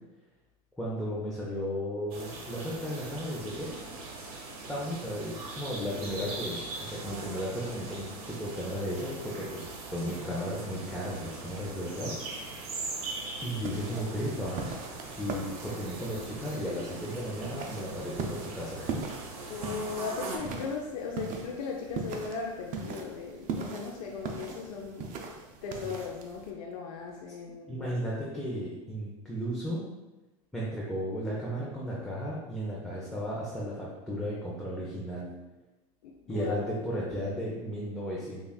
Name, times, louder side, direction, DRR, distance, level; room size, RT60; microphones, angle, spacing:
voice 1, 0.8-3.8 4.7-12.1 13.4-14.7 15.2-19.0 27.7-29.9 30.5-35.3 36.3-38.5, equal, 5° left, -7 dB, 0.7 m, -35 dB
sound 1, 2.1-20.4, right 3 dB, 75° right, 0.9 m, -41 dB
sound 2, 13.4-26.5, right 4 dB, 45° right, 0.5 m, -40 dB
voice 2, 19.5-27.9 36.0-36.7, left 5 dB, 75° left, -1 dB, 0.5 m, -38 dB
5.3 x 2.4 x 2.3 m, 1.1 s
hypercardioid pair, 105°, 19 cm